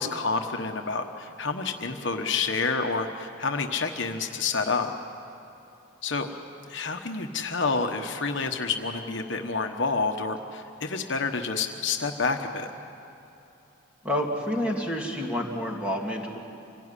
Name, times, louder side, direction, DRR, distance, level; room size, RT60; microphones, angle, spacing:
voice 1, 0.0-4.9 6.0-6.3 6.7-12.7, left 4 dB, 60° left, 4 dB, 1.2 m, -28 dB
voice 2, 14.0-16.4, equal, 5° right, -1 dB, 2.7 m, -29 dB
26.0 x 18.0 x 9.9 m, 2.9 s
head